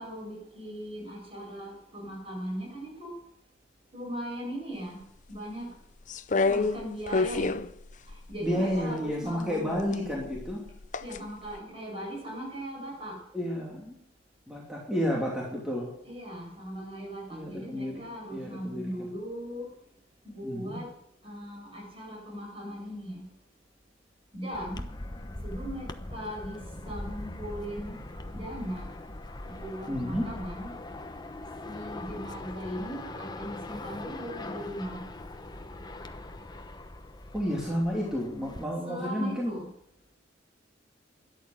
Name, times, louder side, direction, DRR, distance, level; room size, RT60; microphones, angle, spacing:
voice 1, 0.0-3.1 3.9-5.0 5.3-5.8 6.5-7.6 8.0-10.1 11.0-13.2 16.0-19.7 20.2-20.9 21.2-23.3 24.3-24.8 25.4-28.0 28.3-28.9 29.5-30.7 31.6-35.1 38.8-39.6, equal, 30° right, -1 dB, 7.8 m, -38 dB
sound 1, 6.1-8.8 9.8-11.2 11.6-11.7, left 3 dB, 45° left, 0.7 m, -28 dB
voice 2, 8.4-10.6 13.3-13.9 14.5-15.9 17.3-18.0 18.3-19.1 20.4-20.8 29.9-30.3 37.3-39.6, equal, 5° right, -4 dB, 2.9 m, -31 dB
sound 2, 24.5-38.6, left 2 dB, 25° left, 1.0 m, -41 dB
13.0 x 11.0 x 8.1 m, 0.72 s
head